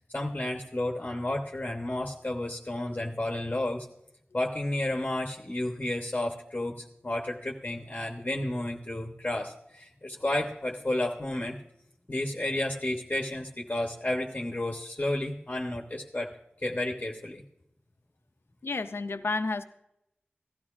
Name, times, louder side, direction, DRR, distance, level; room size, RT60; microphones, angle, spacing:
voice 1, 0.1-3.9 4.3-11.6 12.1-16.3 16.6-17.4, left 1 dB, 35° left, 1 dB, 0.9 m, -32 dB
voice 2, 18.6-19.6, left 3 dB, 90° left, 9 dB, 0.5 m, -31 dB
16.5 x 13.0 x 2.4 m, 0.81 s
wide cardioid pair, 60°, 4 cm